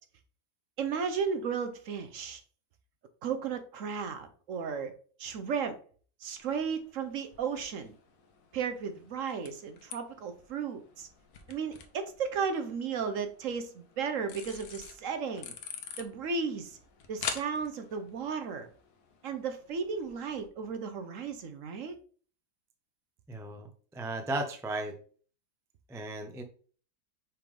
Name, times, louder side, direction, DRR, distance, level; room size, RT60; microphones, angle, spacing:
voice 1, 0.8-2.4 3.2-4.9 5.2-5.8 6.2-8.0 8.5-11.1 11.5-15.5 16.0-16.8 17.1-18.7 19.2-21.9, right 6 dB, 60° right, 8 dB, 1.0 m, -34 dB
sound 1, 6.4-20.5, left 6 dB, 75° left, 1.3 m, -47 dB
voice 2, 23.3-25.0 25.9-26.4, right 2 dB, 5° right, 5 dB, 0.3 m, -35 dB
5.8 x 3.5 x 5.2 m, 0.43 s
omnidirectional pair, 1.7 m